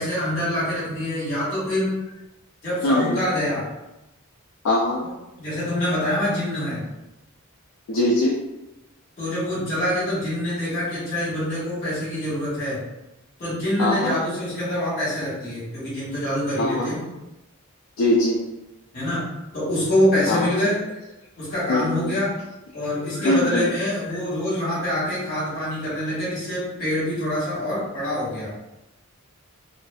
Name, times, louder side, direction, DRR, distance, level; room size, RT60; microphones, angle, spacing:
voice 1, 0.0-1.9 2.6-3.6 5.0-6.8 9.2-12.8 13.4-17.0 18.9-19.2 19.5-20.8 21.4-22.3 22.7-28.5, left 1 dB, 40° left, -8 dB, 1.3 m, -25 dB
voice 2, 2.8-3.2 4.6-5.0 7.9-8.3 13.8-14.1 16.6-16.9 18.0-18.4 20.3-20.5 21.7-22.1 23.2-23.7, left 1 dB, 65° left, -3 dB, 0.3 m, -21 dB
2.5 x 2.3 x 2.3 m, 0.95 s
head